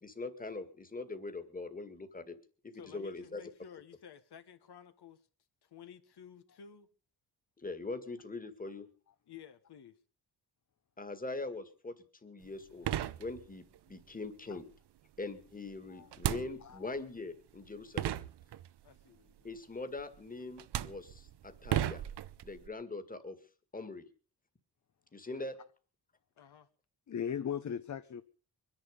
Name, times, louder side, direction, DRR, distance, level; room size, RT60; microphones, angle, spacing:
voice 1, 0.0-2.4 2.6-3.4 7.6-8.9 11.0-12.0 12.2-12.9 13.2-14.7 15.2-18.2 19.4-22.0 22.4-23.4 23.7-24.1 25.1-25.6, left 3 dB, 20° left, 2.0 m, -42 dB
voice 2, 2.7-5.3 5.6-6.9 9.3-10.0 18.8-19.5 26.4-26.7, left 8 dB, 70° left, 1.4 m, -53 dB
sound 1, 12.4-12.5 12.8-13.8 16.1-17.0 17.7-17.8 18.0-18.9 20.0-20.2 20.6-22.7, right 12 dB, 75° right, 0.8 m, -35 dB
voice 3, 27.1-28.2, left 8 dB, 45° left, 0.8 m, -37 dB
22.5 x 10.5 x 5.2 m
cardioid pair, 95°, 41 cm